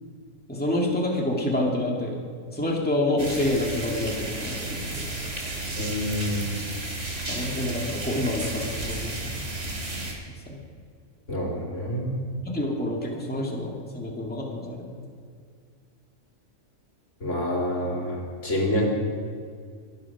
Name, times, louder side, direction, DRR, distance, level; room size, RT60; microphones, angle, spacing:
voice 1, 0.5-2.2 2.5-5.1 7.3-9.5 10.5-10.6 12.4-15.0, left 1 dB, 5° left, -1 dB, 2.0 m, -28 dB
light drizzle with crickets compressed, 3.2-10.1, right 2 dB, 60° right, 3.0 m, -33 dB
voice 2, 5.8-6.4 11.3-12.2 17.2-18.9, left 1 dB, 60° left, -2 dB, 3.1 m, -27 dB
23.0 x 8.5 x 5.9 m, 2.1 s
omnidirectional pair, 1.4 m